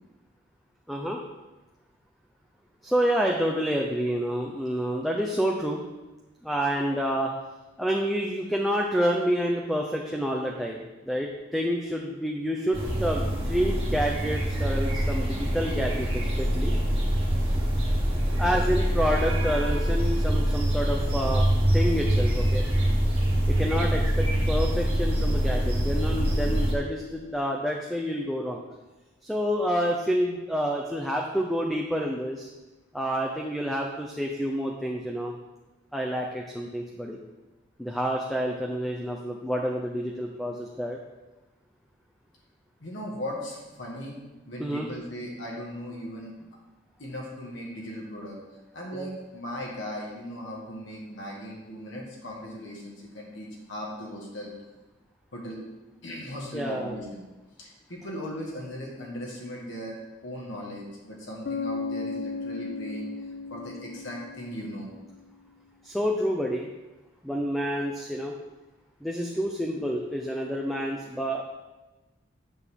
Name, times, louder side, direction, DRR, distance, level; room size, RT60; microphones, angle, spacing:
voice 1, 0.9-1.2 2.8-5.8 6.4-7.3 7.8-16.8 18.4-21.5 21.7-22.7 23.5-28.6 29.2-32.5 32.9-35.4 35.9-37.2 37.8-41.0 44.6-44.9 49.0-49.1 56.5-56.9 65.8-66.7 67.2-68.4 69.0-71.4, equal, ahead, 0 dB, 0.6 m, -28 dB
sound 1, 12.7-26.7, equal, 30° right, 1.4 m, -25 dB
voice 2, 42.8-44.2 44.5-46.3 47.0-48.4 48.7-54.5 55.3-55.6 56.0-57.2 57.6-60.0 60.2-63.1 63.5-64.9, equal, 70° left, -3 dB, 1.7 m, -38 dB
Bass guitar, 61.4-65.1, left 4 dB, 50° left, 0.3 m, -35 dB
9.1 x 6.4 x 3.6 m, 1.1 s
head